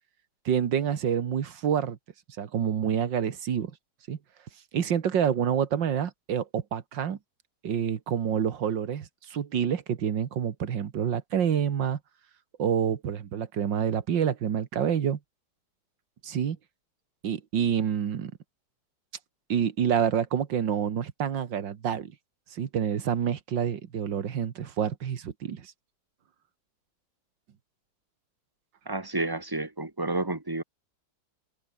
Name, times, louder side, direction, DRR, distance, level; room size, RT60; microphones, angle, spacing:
voice 1, 0.5-2.0 2.4-3.7 4.1-4.2 4.7-7.2 7.6-12.0 12.6-15.2 16.2-16.6 17.2-18.3 19.5-22.1 22.5-25.7, right 8 dB, 90° right, 2.2 m, -27 dB
voice 2, 28.9-30.6, right 2 dB, 10° right, 2.3 m, -30 dB
omnidirectional pair, 1.9 m